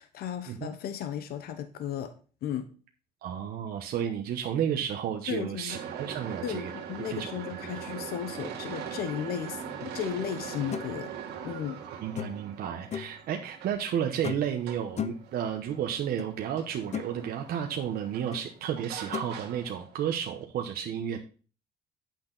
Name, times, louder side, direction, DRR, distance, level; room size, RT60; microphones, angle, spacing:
voice 1, 0.0-2.1 2.4-2.7 5.3-5.8 6.4-11.1 11.4-11.8, left 9 dB, 65° left, 10 dB, 0.9 m, -35 dB
voice 2, 3.2-6.7 7.1-7.4 12.0-21.2, right 9 dB, 65° right, 3 dB, 1.0 m, -32 dB
sound 1, 5.7-20.4, right 8 dB, 80° right, 2.1 m, -42 dB
sound 2, 10.7-10.9 12.2-12.5 12.9-13.2 14.2-14.6 15.0-15.3 16.2-16.3 16.7-17.1 18.3-18.4 19.1-19.3, left 9 dB, 40° left, 0.7 m, -35 dB
8.6 x 6.1 x 3.9 m, 0.39 s
cardioid pair, 110°, 17 cm